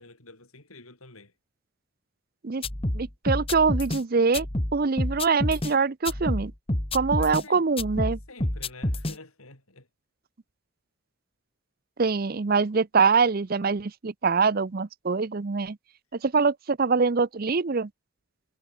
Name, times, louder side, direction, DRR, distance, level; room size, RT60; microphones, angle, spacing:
voice 1, 0.0-1.3 7.2-7.6 8.3-9.9, left 3 dB, 85° left, 7.7 m, -47 dB
sound 1, 2.6-4.0 4.3-5.7 6.0-7.4 7.8-9.1, left 1 dB, 25° left, 1.9 m, -28 dB
voice 2, 2.9-4.5 4.7-6.5 6.9-8.2 12.0-15.8 16.2-17.9, right 4 dB, 45° right, 0.6 m, -24 dB
head